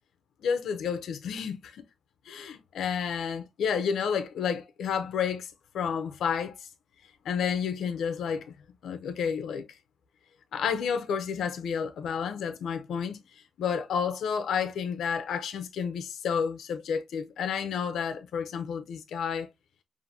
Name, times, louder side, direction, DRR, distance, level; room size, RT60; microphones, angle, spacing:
voice 1, 0.4-1.8 2.3-6.6 7.2-8.5 8.8-9.7 10.5-13.2 13.6-19.5, left 7 dB, 85° left, 0.6 m, -30 dB
5.6 x 2.6 x 2.6 m
wide cardioid pair, 145°, 0 cm